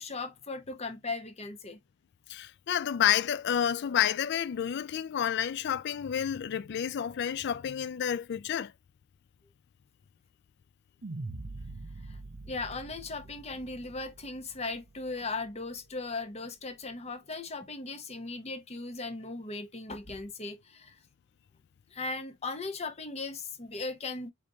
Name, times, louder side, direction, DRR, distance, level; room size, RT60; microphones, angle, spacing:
voice 1, 0.0-1.8 12.0-12.2 12.5-21.0 21.9-24.3, left 3 dB, 30° left, 0.7 m, -38 dB
voice 2, 2.3-8.7, left 9 dB, 50° left, 0.3 m, -29 dB
sound 1, 11.0-15.4, right 2 dB, 50° right, 0.7 m, -44 dB
5.1 x 3.8 x 2.8 m
head